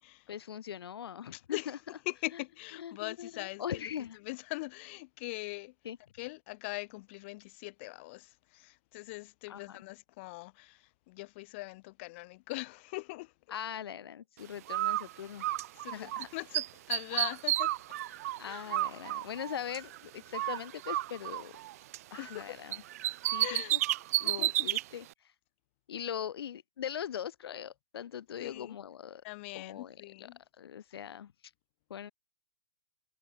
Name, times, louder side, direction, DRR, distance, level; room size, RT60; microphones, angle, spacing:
voice 1, 0.3-1.8 2.3-2.4 2.8-4.2 5.8-6.0 9.5-9.8 13.5-15.5 15.9-16.3 18.4-21.6 22.1-22.8 23.2-23.8 24.2-25.1 25.9-29.2 29.5-30.3 30.6-31.3 31.9-32.1, left 9 dB, 85° left, 1.5 m, -41 dB
voice 2, 1.3-1.7 2.1-3.9 4.2-5.7 6.2-13.3 15.2-15.3 15.8-17.7 18.4-18.8 22.2-22.6 23.4-23.8 24.2-24.7 28.4-28.8 29.2-30.4, left 24 dB, 30° left, 3.9 m, -41 dB
Bird, 14.7-16.2 16.5-20.0 20.3-22.4 22.7-24.8, right 15 dB, 40° right, 1.9 m, -32 dB
hypercardioid pair, 180°, 13 cm